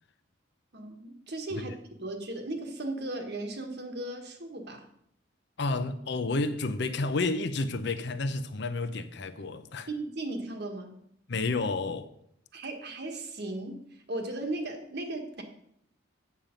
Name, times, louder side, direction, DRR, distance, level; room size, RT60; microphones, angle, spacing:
voice 1, 0.7-1.7 2.0-4.9 9.9-11.0 12.5-15.4, right 2 dB, 55° right, 1.5 m, -36 dB
voice 2, 5.6-9.9 11.3-12.1, left 3 dB, 60° left, 0.7 m, -30 dB
8.5 x 7.5 x 5.2 m
head